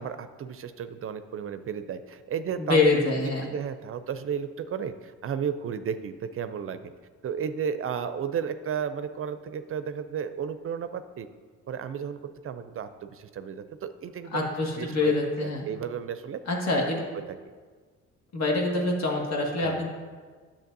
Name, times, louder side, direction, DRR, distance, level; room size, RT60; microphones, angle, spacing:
voice 1, 0.0-3.1 3.4-6.9 7.2-11.3 11.7-14.5 14.8-15.1 15.4-16.4 16.9-17.0 19.6-19.9, right 7 dB, 45° right, 11 dB, 0.4 m, -33 dB
voice 2, 2.6-3.5 14.3-15.7 16.5-17.0 18.3-19.9, left 3 dB, 60° left, -1 dB, 1.8 m, -25 dB
10.0 x 7.1 x 2.7 m, 1.5 s
cardioid pair, 90°, 30 cm